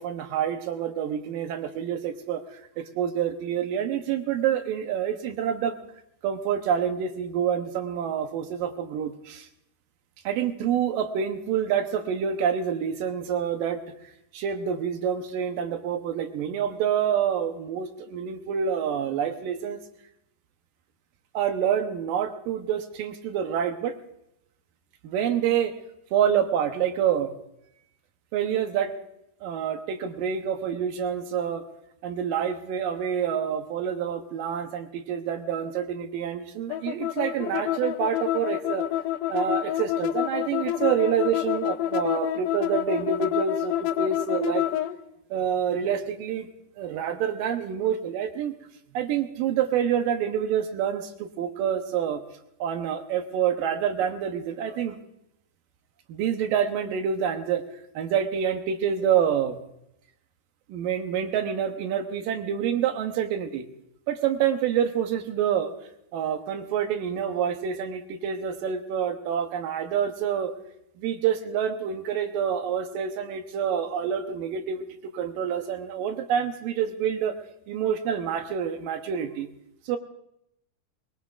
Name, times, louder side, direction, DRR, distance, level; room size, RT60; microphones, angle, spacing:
voice 1, 0.0-5.8 6.2-9.5 10.3-13.8 14.3-19.8 21.3-23.9 25.0-25.7 26.1-27.3 28.3-28.9 29.4-31.6 32.0-38.9 39.3-44.7 45.3-46.5 46.8-48.5 48.9-52.2 52.6-55.0 56.1-57.6 58.0-59.6 60.7-63.7 64.1-65.7 66.1-70.5 71.0-74.9 75.1-77.4 77.7-79.5 79.9-80.0, right 8 dB, 80° right, 6 dB, 2.4 m, -27 dB
sound 1, 36.7-44.9, left 13 dB, 75° left, 2.1 m, -27 dB
22.0 x 20.5 x 2.4 m, 0.81 s
omnidirectional pair, 4.1 m